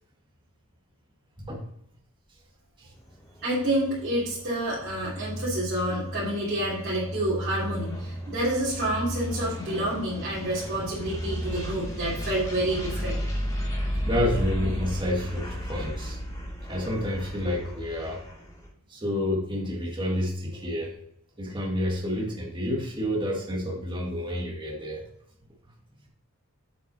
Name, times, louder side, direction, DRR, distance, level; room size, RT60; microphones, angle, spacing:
sound 1, 3.0-18.7, equal, 15° left, 2.3 m, -34 dB
voice 1, 3.4-13.2, right 1 dB, 50° right, -11 dB, 3.3 m, -28 dB
voice 2, 14.0-16.2 16.7-18.2 18.9-20.9 21.4-25.0, left 1 dB, 20° right, 0 dB, 1.7 m, -29 dB
8.1 x 5.9 x 4.2 m, 0.75 s
head